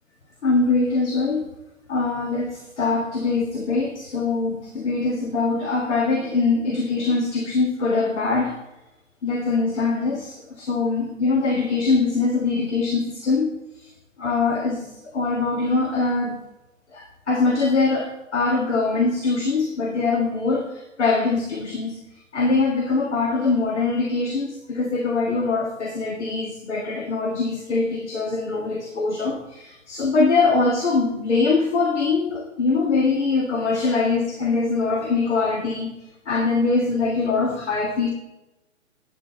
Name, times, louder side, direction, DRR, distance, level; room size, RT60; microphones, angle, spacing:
voice 1, 0.4-1.5 1.9-8.6 9.2-13.5 14.2-14.9 15.1-16.4 16.9-22.0 22.3-35.9 36.3-38.1, left 3 dB, 60° left, 1 dB, 1.6 m, -23 dB
9.3 x 8.8 x 4.3 m, 0.98 s
figure-of-eight pair, 125°, 40 cm